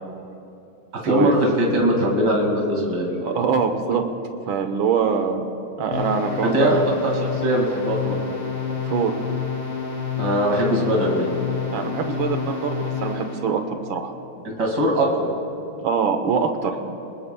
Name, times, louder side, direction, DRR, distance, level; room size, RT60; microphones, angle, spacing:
voice 1, 0.9-3.3 6.5-6.8 7.4-8.2 10.2-11.3 14.4-15.3, equal, 55° right, -1 dB, 2.9 m, -21 dB
voice 2, 3.2-4.0 4.5-5.5 5.8-6.9 8.9-9.2 11.7-14.1 15.8-16.8, right 6 dB, 75° right, 6 dB, 1.9 m, -23 dB
sound 1, 5.9-13.5, left 7 dB, 85° left, 3.9 m, -29 dB
25.5 x 19.5 x 2.3 m, 2.8 s
omnidirectional pair, 2.2 m